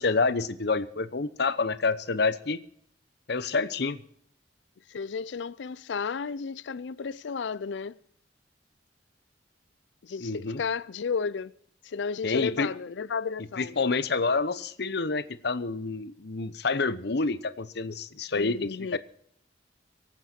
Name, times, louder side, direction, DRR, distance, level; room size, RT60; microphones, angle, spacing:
voice 1, 0.0-2.6 3.3-4.0 10.2-10.6 12.2-12.7 13.6-19.0, left 4 dB, 65° left, 0.9 m, -28 dB
voice 2, 4.9-7.9 10.0-11.5 11.8-13.8 18.4-19.0, left 5 dB, 85° left, 0.5 m, -33 dB
24.5 x 8.5 x 4.4 m
head